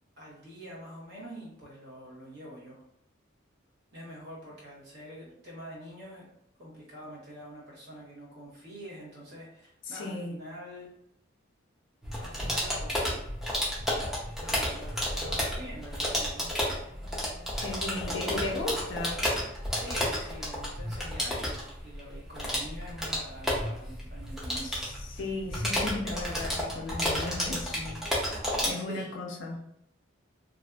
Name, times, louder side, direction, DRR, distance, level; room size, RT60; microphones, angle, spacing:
voice 1, 0.2-2.8 3.9-6.3 6.6-10.9 12.2-13.2 14.3-16.5 17.8-19.2 19.7-24.7 27.5-28.1 28.9-29.1, equal, 50° right, -5 dB, 1.0 m, -45 dB
voice 2, 9.9-10.4 17.6-19.2 24.6-27.8 28.6-29.6, left 2 dB, 60° left, 2 dB, 0.5 m, -35 dB
sound 1, 12.0-28.7, equal, ahead, 0.5 m, -32 dB
2.5 x 2.4 x 2.2 m, 0.76 s
head